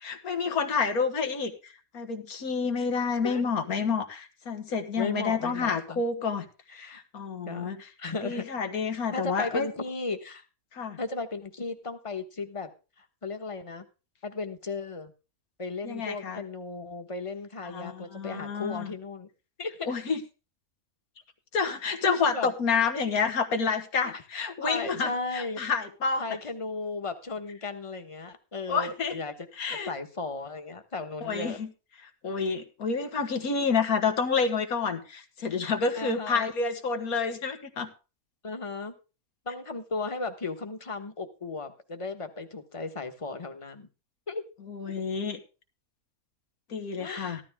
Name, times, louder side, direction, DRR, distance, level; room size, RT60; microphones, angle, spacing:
voice 1, 0.0-1.5 1.9-6.4 6.9-7.8 8.2-9.7 10.8-11.0 15.8-16.4 17.7-18.9 19.9-20.2 21.5-26.2 28.7-29.1 29.6-29.9 31.2-31.7 32.2-37.9 44.7-45.4 46.7-47.4, left 5 dB, 85° left, 7 dB, 1.9 m, -29 dB
voice 2, 5.0-6.0 6.7-7.0 7.4-7.7 8.0-8.4 9.1-10.4 11.0-12.7 13.0-13.9 14.2-15.1 15.6-19.3 19.6-19.9 22.3-22.5 24.0-25.6 26.2-29.5 29.9-31.6 35.9-36.5 38.4-38.9 39.4-43.9 44.3-44.4 47.0-47.4, left 3 dB, 25° left, 7 dB, 1.1 m, -35 dB
14.5 x 12.0 x 3.5 m, 0.32 s
omnidirectional pair, 1.5 m